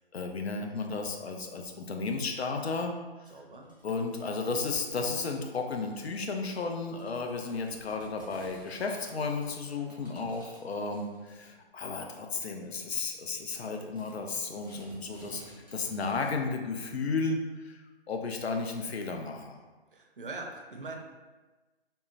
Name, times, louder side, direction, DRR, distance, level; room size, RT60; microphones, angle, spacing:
voice 1, 0.1-2.9 3.8-15.4 15.7-17.8 18.1-19.6, left 4 dB, 80° left, 3 dB, 0.6 m, -33 dB
voice 2, 3.3-3.7 19.9-21.0, right 3 dB, 55° right, 1 dB, 0.5 m, -41 dB
sound 1, 3.6-16.3, equal, 20° left, 0.5 m, -56 dB
3.6 x 2.0 x 2.6 m, 1.2 s
hypercardioid pair, 175°, 31 cm